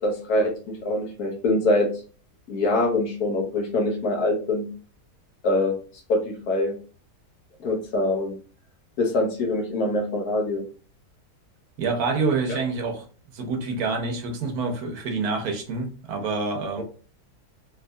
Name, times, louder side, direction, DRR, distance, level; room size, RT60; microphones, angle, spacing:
voice 1, 0.0-1.9 2.5-4.7 5.4-5.7 6.1-6.8 7.6-8.3 9.0-10.6 12.5-12.6 16.8-16.9, left 2 dB, 70° left, 1 dB, 1.2 m, -24 dB
voice 2, 11.8-13.1 13.3-16.8, right 4 dB, 70° right, 5 dB, 1.1 m, -27 dB
3.5 x 2.9 x 2.2 m, 0.38 s
omnidirectional pair, 1.7 m